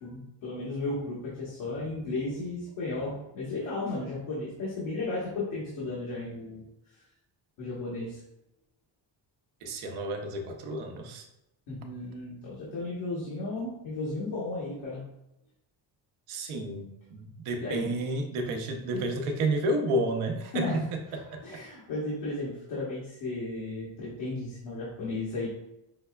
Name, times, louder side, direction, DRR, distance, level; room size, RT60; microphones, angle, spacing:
voice 1, 0.0-6.6 7.6-8.2 11.7-15.0 17.6-17.9 20.5-20.8 21.4-25.5, left 2 dB, 85° left, -8 dB, 1.3 m, -34 dB
voice 2, 9.6-11.3 16.3-21.4, right 1 dB, 85° right, 4 dB, 0.7 m, -31 dB
5.3 x 2.2 x 2.2 m, 0.87 s
cardioid pair, 80°, 49 cm